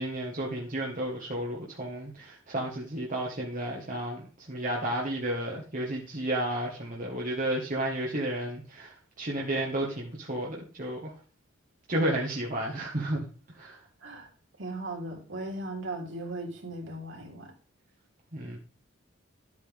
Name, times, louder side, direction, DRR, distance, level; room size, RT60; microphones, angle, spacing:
voice 1, 0.0-11.1 11.9-13.3 13.6-13.8 18.3-18.6, right 1 dB, 40° right, -2 dB, 1.7 m, -32 dB
voice 2, 14.6-17.5, right 2 dB, 70° right, 0 dB, 3.6 m, -37 dB
13.0 x 8.4 x 3.6 m, 0.41 s
head